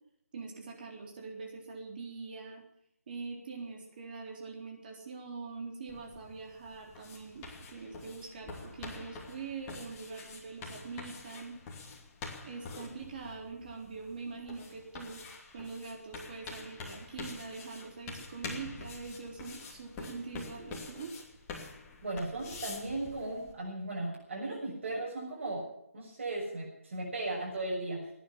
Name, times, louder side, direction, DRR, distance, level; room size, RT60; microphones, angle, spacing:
voice 1, 0.3-2.6 3.1-11.6 12.4-15.2 15.5-21.1, right 4 dB, 35° right, 1 dB, 3.7 m, -43 dB
sound 1, 5.9-23.5, left 4 dB, 15° left, 2.7 m, -47 dB
voice 2, 22.0-25.7 25.9-28.1, right 2 dB, 55° right, -3 dB, 6.8 m, -36 dB
18.5 x 10.5 x 7.4 m, 0.75 s
figure-of-eight pair, 155°, 8 cm